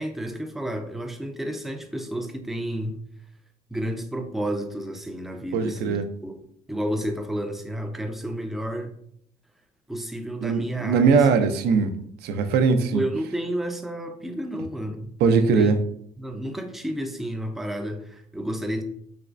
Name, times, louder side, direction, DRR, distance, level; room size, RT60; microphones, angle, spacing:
voice 1, 0.0-3.0 3.7-6.3 6.7-8.9 9.9-11.4 12.9-15.7 16.2-18.8, right 1 dB, ahead, 6 dB, 0.3 m, -31 dB
voice 2, 5.5-6.1 10.4-11.9 12.2-13.0 15.2-15.8, right 5 dB, 70° right, 8 dB, 0.4 m, -20 dB
3.3 x 3.0 x 2.5 m, 0.68 s
cardioid pair, 110°, 17 cm